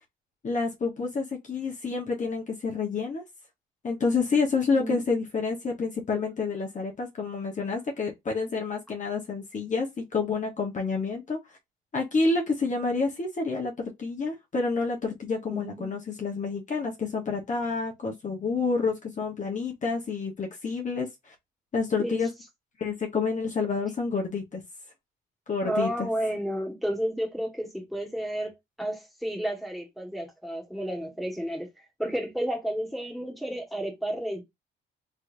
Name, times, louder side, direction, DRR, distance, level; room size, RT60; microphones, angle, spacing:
voice 1, 0.4-3.2 3.8-11.4 11.9-13.7 14.0-21.3 21.7-22.3 22.8-24.6 25.5-26.1, left 4 dB, 40° left, 1.2 m, -28 dB
voice 2, 15.5-16.0 22.0-22.3 25.6-31.7 32.0-34.4, equal, ahead, 1.8 m, -31 dB
3.5 x 3.1 x 2.7 m
cardioid pair, 90°, 20 cm